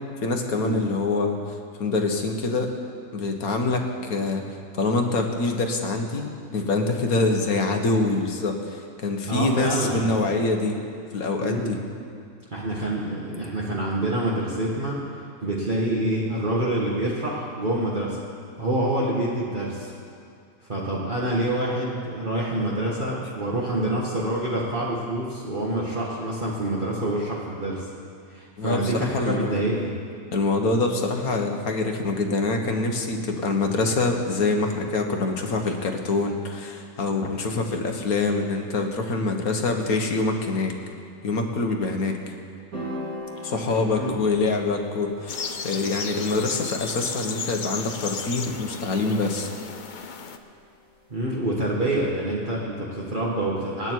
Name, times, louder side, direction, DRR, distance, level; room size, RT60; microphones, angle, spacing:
voice 1, 0.2-2.7 3.1-10.8 11.1-11.8 28.6-29.6 30.3-40.7 41.2-42.2 43.4-49.5, left 3 dB, 80° left, 3 dB, 1.9 m, -25 dB
voice 2, 9.3-10.4 11.4-11.8 12.5-15.0 15.4-18.2 18.6-19.9 20.7-27.9 28.3-30.0 43.7-44.2 51.1-53.9, right 1 dB, 35° right, -5 dB, 1.7 m, -27 dB
sound 1, 42.7-51.1, equal, 75° right, 4.1 m, -41 dB
sound 2, 45.3-50.4, left 5 dB, 45° left, 0.7 m, -34 dB
26.5 x 9.0 x 4.6 m, 2.4 s
omnidirectional pair, 1.5 m